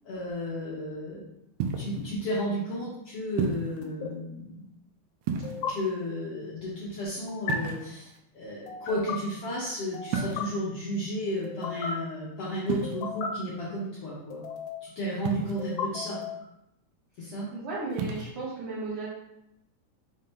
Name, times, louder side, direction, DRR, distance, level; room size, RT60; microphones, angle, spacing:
voice 1, 0.0-1.2 1.8-4.6 5.5-14.4 14.8-16.2 17.2-17.5, equal, 65° left, -7 dB, 1.6 m, -33 dB
sound 1, 1.6-2.0 3.4-3.8 5.2-5.9 7.5-8.2 10.1-10.6 12.7-12.9 15.3-15.8 17.9-18.3, right 5 dB, 85° right, 1.5 m, -32 dB
sound 2, 1.8-2.0 3.8-4.1 5.4-5.7 7.3-7.6 8.7-9.2 9.9-10.4 11.4-11.9 12.8-13.3 14.3-14.9 15.6-16.4, left 6 dB, 85° left, 2.1 m, -35 dB
voice 2, 17.5-19.1, right 3 dB, 65° right, -7 dB, 1.5 m, -34 dB
5.3 x 2.7 x 3.6 m, 0.84 s
omnidirectional pair, 3.5 m